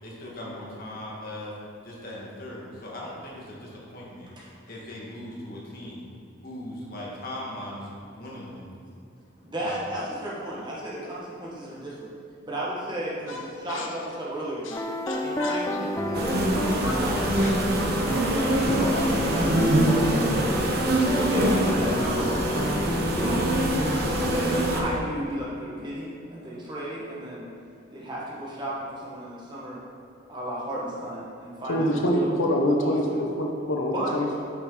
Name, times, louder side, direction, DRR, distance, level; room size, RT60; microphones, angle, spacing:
voice 1, 0.0-1.5 1.8-4.3 4.7-6.0 6.4-7.9 8.1-8.7 9.6-9.8 18.3-18.5, left 1 dB, 45° left, -4 dB, 1.7 m, -39 dB
voice 2, 9.4-12.1 12.4-14.7 15.2-17.2 18.0-20.1 21.1-23.5 23.9-27.4 27.9-29.8 30.3-32.3 32.8-33.2 33.8-34.1, right 1 dB, 20° right, -6 dB, 1.5 m, -34 dB
sound 1, 14.7-25.0, left 1 dB, 15° left, 0.4 m, -30 dB
voice 3, 15.1-15.6 16.4-17.1 17.4-17.6 31.7-34.4, equal, 80° left, 0 dB, 0.9 m, -27 dB
sound 2, 16.1-24.8, right 1 dB, 50° right, 0.9 m, -24 dB
8.6 x 6.0 x 3.9 m, 2.5 s
head